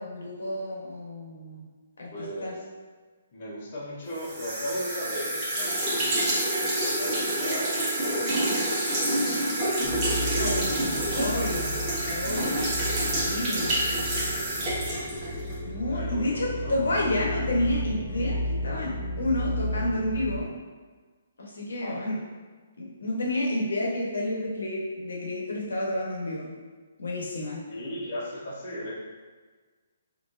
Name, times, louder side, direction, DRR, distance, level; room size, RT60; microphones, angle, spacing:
voice 1, 0.0-1.7 2.0-2.5 10.4-11.8 12.1-12.6 13.0-13.7 15.6-20.5 21.4-22.2 22.7-26.5 27.0-27.6, left 1 dB, 90° left, -3 dB, 1.1 m, -30 dB
voice 2, 2.1-2.6 3.3-10.2 13.3-14.0 14.3-15.0 15.4-16.9 21.8-22.1 27.7-28.9, equal, 40° left, -7 dB, 1.1 m, -38 dB
sound 1, 4.2-15.6, right 1 dB, 25° right, 1.1 m, -28 dB
sound 2, 9.8-20.4, left 1 dB, 10° left, 1.4 m, -33 dB
4.2 x 2.8 x 2.6 m, 1.4 s
hypercardioid pair, 160°, 0 cm